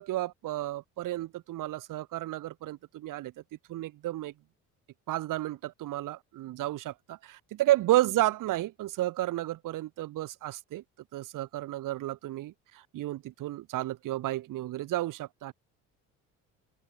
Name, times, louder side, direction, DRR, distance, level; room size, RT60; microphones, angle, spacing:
voice 1, 0.0-3.3 3.7-4.3 5.1-10.8 11.1-15.5, right 15 dB, 45° right, 1.1 m, -32 dB
figure-of-eight pair, 55°, 44 cm